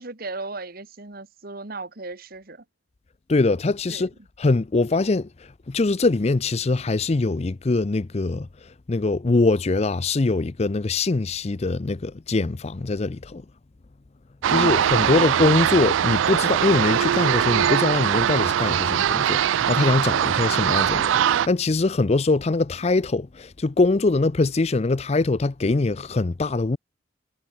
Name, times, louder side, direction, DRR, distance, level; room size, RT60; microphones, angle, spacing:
voice 1, 0.0-2.6 3.9-4.1 14.5-15.4, right 3 dB, 50° right, 1.8 m, -36 dB
voice 2, 3.3-4.1 4.4-5.3 5.7-8.5 8.9-13.4 14.5-26.8, left 3 dB, 35° left, 0.5 m, -22 dB
sound 1, 14.4-21.5, right 9 dB, 75° right, 0.3 m, -21 dB
head